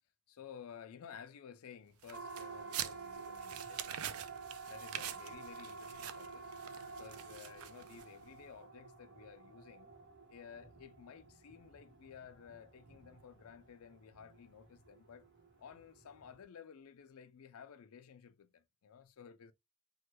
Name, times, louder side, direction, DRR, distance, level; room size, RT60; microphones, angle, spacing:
voice 1, 0.3-4.2 4.7-6.4 6.8-9.9 10.3-15.3 15.6-19.5, left 7 dB, 80° left, 0.4 m, -54 dB
sound 1, 2.0-8.3, right 11 dB, 80° right, 0.4 m, -46 dB
Siren, 2.1-16.4, right 4 dB, 55° right, 0.9 m, -51 dB
3.1 x 2.2 x 3.0 m
head